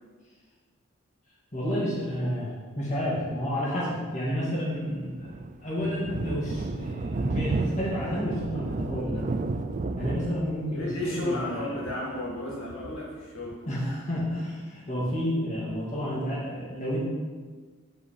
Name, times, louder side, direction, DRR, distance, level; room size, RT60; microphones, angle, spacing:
voice 1, 1.5-5.3 5.6-9.2 10.0-11.8 13.7-17.0, equal, 35° left, -6 dB, 2.3 m, -30 dB
Thunder, 4.8-13.9, right 3 dB, 35° right, 0.4 m, -33 dB
voice 2, 10.7-13.6, left 1 dB, 65° left, -4 dB, 1.7 m, -33 dB
9.8 x 4.9 x 4.7 m, 1.4 s
head